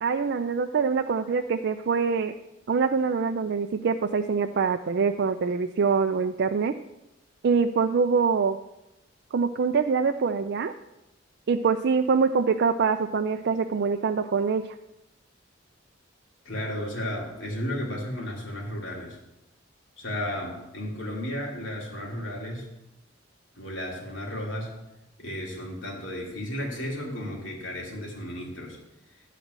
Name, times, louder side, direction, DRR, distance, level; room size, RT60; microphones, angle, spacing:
voice 1, 0.0-2.3 2.7-6.7 7.4-8.6 9.3-10.8 11.5-14.7, right 5 dB, 60° right, 6 dB, 0.4 m, -24 dB
voice 2, 16.4-19.2 20.0-22.6 23.5-24.7 25.2-28.8, left 1 dB, 70° left, -2 dB, 3.0 m, -33 dB
12.5 x 4.2 x 8.0 m, 0.93 s
head